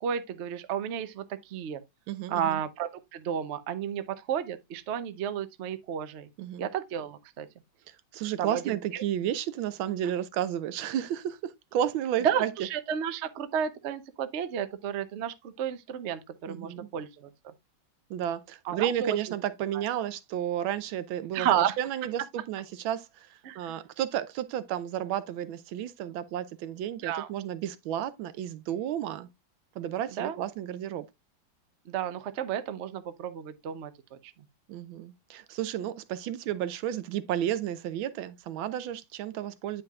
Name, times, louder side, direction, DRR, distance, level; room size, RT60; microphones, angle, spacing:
voice 1, 0.0-1.8 2.3-6.3 6.6-7.5 8.4-9.0 12.2-17.3 18.6-19.2 19.7-19.8 21.3-21.8 23.4-23.8 27.0-27.3 30.1-30.4 31.9-34.3, right 9 dB, 70° right, 0.6 m, -32 dB
voice 2, 2.1-2.6 6.4-6.7 8.1-12.5 16.5-16.9 18.1-21.5 21.8-29.3 29.8-31.0 34.7-39.8, right 10 dB, 90° right, 1.5 m, -32 dB
9.1 x 5.5 x 2.3 m
omnidirectional pair, 2.1 m